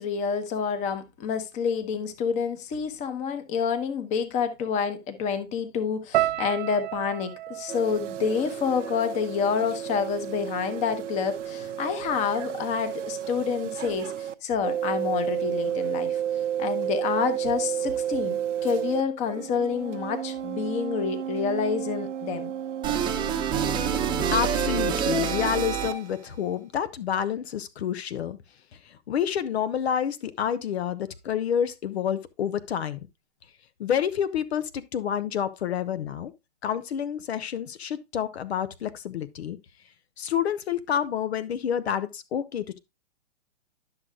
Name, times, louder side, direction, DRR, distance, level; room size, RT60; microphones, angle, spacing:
voice 1, 0.0-16.2 16.6-22.5, left 6 dB, 20° left, 1.0 m, -28 dB
sound 1, 6.1-10.4 10.6-11.4 12.0-12.2, right 15 dB, 40° right, 0.6 m, -33 dB
sound 2, 7.7-14.3 14.6-19.0 19.3-25.5, right 10 dB, 90° right, 0.7 m, -32 dB
sound 3, 22.8-26.2, right 7 dB, 15° right, 0.9 m, -27 dB
voice 2, 24.3-28.4 28.7-33.0 33.8-36.3 36.6-39.6 40.2-42.8, left 9 dB, 60° left, 0.9 m, -28 dB
11.5 x 6.4 x 2.3 m
hypercardioid pair, 140°, 35 cm